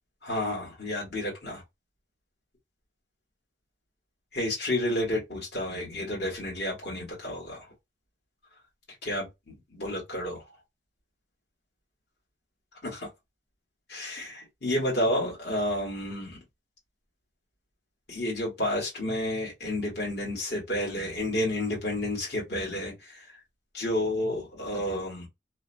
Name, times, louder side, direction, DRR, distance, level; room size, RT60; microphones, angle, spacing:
voice 1, 0.2-1.6 4.3-7.7 9.0-10.4 12.8-13.1 13.9-16.4 18.1-23.2 23.7-25.3, left 1 dB, 65° left, 1.4 m, -31 dB
2.7 x 2.1 x 2.5 m
head